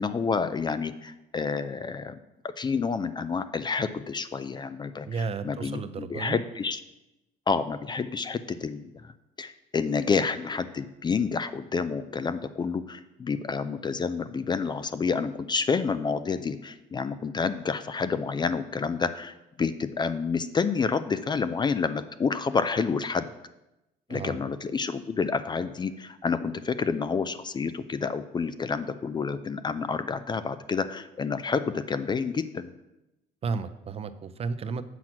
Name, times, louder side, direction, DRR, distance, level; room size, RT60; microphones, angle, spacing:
voice 1, 0.0-2.2 2.4-6.8 7.5-9.1 9.4-23.3 24.1-32.7, left 5 dB, 25° left, 12 dB, 0.4 m, -29 dB
voice 2, 5.1-6.4 24.1-24.4 33.4-34.8, right 5 dB, 35° right, 12 dB, 0.5 m, -33 dB
7.4 x 6.0 x 5.9 m, 0.94 s
cardioid pair, 110°, 17 cm